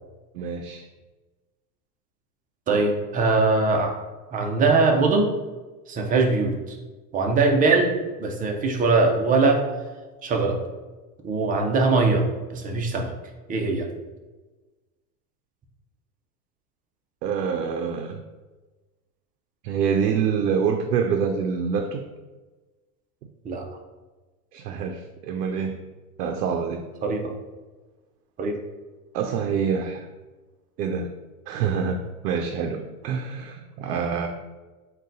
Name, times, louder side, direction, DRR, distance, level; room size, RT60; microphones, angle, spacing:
voice 1, 0.3-0.9 17.2-18.2 19.6-22.0 24.5-25.8 26.2-26.9 29.1-30.1 30.8-31.1 31.5-34.3, right 6 dB, 90° right, 4 dB, 0.5 m, -26 dB
voice 2, 2.7-4.0 4.3-5.3 5.9-6.8 7.1-9.6 10.2-10.6 11.2-12.3 12.5-13.1 13.5-13.9 23.4-23.6 27.0-27.3 28.4-28.6, right 3 dB, 20° right, 2 dB, 0.5 m, -21 dB
3.8 x 2.3 x 3.8 m, 1.2 s
supercardioid pair, 115°, 46 cm